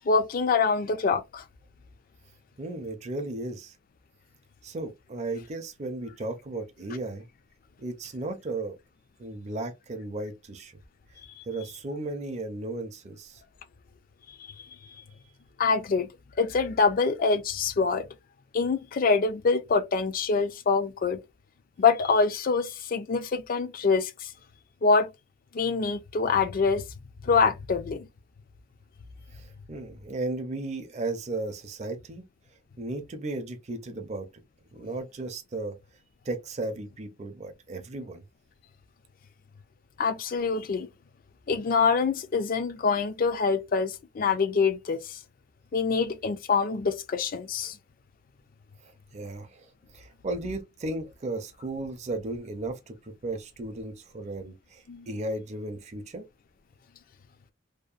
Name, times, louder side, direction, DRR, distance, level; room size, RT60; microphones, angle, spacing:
voice 1, 0.1-1.4 15.6-16.1 16.4-18.0 18.5-21.2 21.8-24.3 24.8-25.1 25.5-26.8 27.2-28.1 40.0-40.9 41.5-45.2 45.7-47.7 54.9-55.1, left 4 dB, 45° left, 0.4 m, -25 dB
voice 2, 2.6-3.8 4.6-7.3 7.8-8.8 9.2-10.8 11.1-11.2 11.5-13.4 29.3-32.2 32.8-34.3 34.7-35.8 36.2-38.2 48.8-56.2, right 2 dB, 35° right, 0.5 m, -35 dB
2.8 x 2.0 x 2.3 m
head